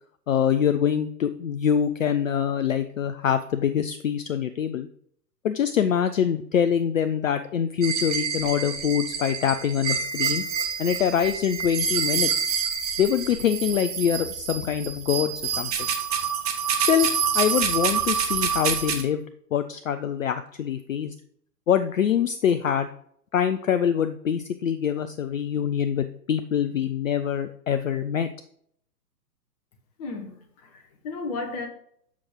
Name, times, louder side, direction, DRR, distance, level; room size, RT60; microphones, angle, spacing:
voice 1, 0.3-4.9 5.4-10.4 10.8-12.5 13.0-15.7 16.8-17.1 17.3-19.2 19.5-21.1 21.7-22.9 23.3-28.3, left 8 dB, 55° left, 0.5 m, -24 dB
sound 1, 7.8-19.0, right 6 dB, 25° right, 0.7 m, -27 dB
voice 2, 30.0-31.7, left 3 dB, 25° left, 1.0 m, -34 dB
7.4 x 5.9 x 3.7 m
figure-of-eight pair, 120°, 50 cm